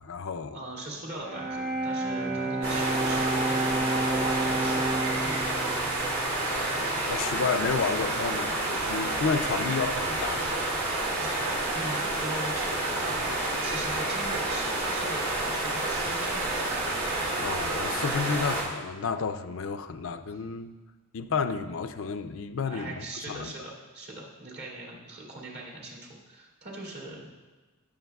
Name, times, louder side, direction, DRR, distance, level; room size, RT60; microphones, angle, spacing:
voice 1, 0.0-0.6 7.0-10.6 17.4-20.8 21.1-23.5, left 5 dB, 65° left, 8 dB, 0.4 m, -31 dB
voice 2, 0.5-5.4 10.8-16.7 22.7-26.0 26.3-27.3, right 2 dB, 50° right, -4 dB, 2.3 m, -40 dB
Bowed string instrument, 1.2-7.2, right 2 dB, 35° right, 1.5 m, -31 dB
sound 1, 2.6-18.6, right 2 dB, 85° right, 2.6 m, -29 dB
18.5 x 7.0 x 2.3 m, 1.2 s
head